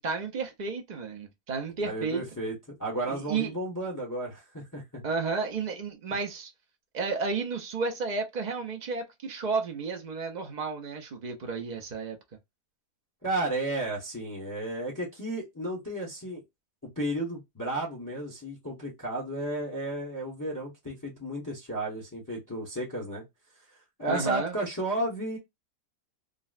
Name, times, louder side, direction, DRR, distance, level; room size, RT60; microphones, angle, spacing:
voice 1, 0.0-2.2 3.1-3.5 5.0-6.5 6.9-12.2 24.1-24.5, right 4 dB, 65° right, 0.4 m, -32 dB
voice 2, 1.8-2.5 2.8-5.0 13.2-16.4 17.0-23.2 23.7-25.4, right 1 dB, 15° left, 0.9 m, -33 dB
3.8 x 2.1 x 2.3 m
omnidirectional pair, 1.7 m